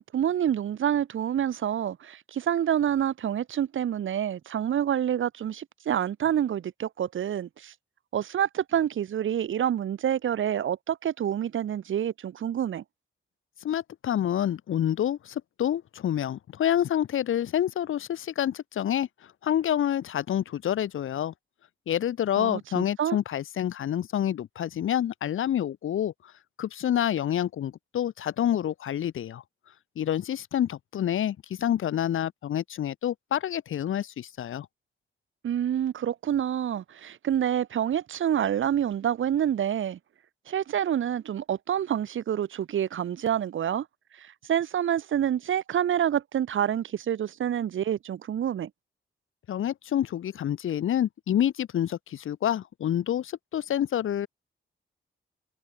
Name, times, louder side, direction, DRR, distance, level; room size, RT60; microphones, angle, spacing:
voice 1, 0.0-7.7 8.1-12.8 22.4-23.2 35.4-40.0 40.5-43.9 44.2-48.7, right 10 dB, 75° right, 3.2 m, -27 dB
voice 2, 13.6-19.1 19.4-21.3 21.9-26.1 26.6-29.4 30.0-34.7 49.5-54.3, left 10 dB, 90° left, 2.2 m, -28 dB
wide cardioid pair, 160°, 20 cm